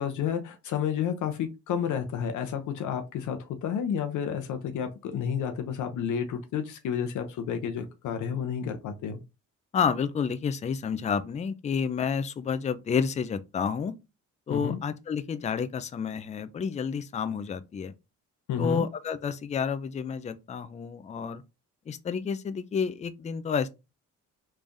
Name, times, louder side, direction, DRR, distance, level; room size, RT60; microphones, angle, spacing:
voice 1, 0.0-9.2 14.5-14.8 18.5-18.8, left 8 dB, 75° left, 0.7 m, -31 dB
voice 2, 9.7-13.9 14.5-17.9 18.6-21.4 21.9-23.7, left 6 dB, 25° left, 0.4 m, -30 dB
3.5 x 3.3 x 2.6 m
cardioid pair, 90°, 30 cm